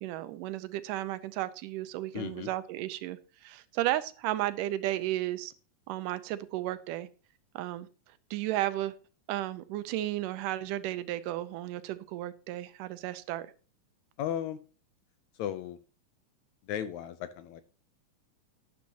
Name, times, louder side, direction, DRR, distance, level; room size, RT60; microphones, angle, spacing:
voice 1, 0.0-5.5 5.9-7.1 7.6-7.9 8.3-8.9 9.3-13.5, right 15 dB, 90° right, 2.3 m, -33 dB
voice 2, 2.1-2.5 14.2-14.6 15.4-15.8 16.7-17.6, left 10 dB, 75° left, 1.8 m, -35 dB
11.5 x 10.5 x 2.9 m
omnidirectional pair, 3.7 m